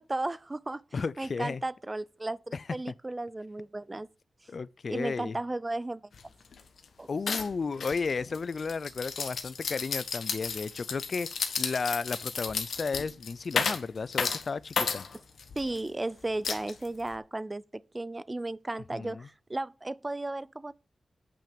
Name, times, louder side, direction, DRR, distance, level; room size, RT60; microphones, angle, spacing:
voice 1, 0.0-0.8 1.2-4.1 4.9-6.1 7.0-7.1 15.6-20.7, right 2 dB, 25° right, 0.4 m, -35 dB
voice 2, 0.9-1.6 2.5-2.6 4.5-5.4 7.1-15.0 18.9-19.3, left 4 dB, 60° left, 0.4 m, -33 dB
sound 1, 6.1-6.2 6.5-6.8 7.3-15.8 16.4-17.1, left 5 dB, 80° left, 1.2 m, -33 dB
8.6 x 5.8 x 5.1 m
cardioid pair, 50°, 0 cm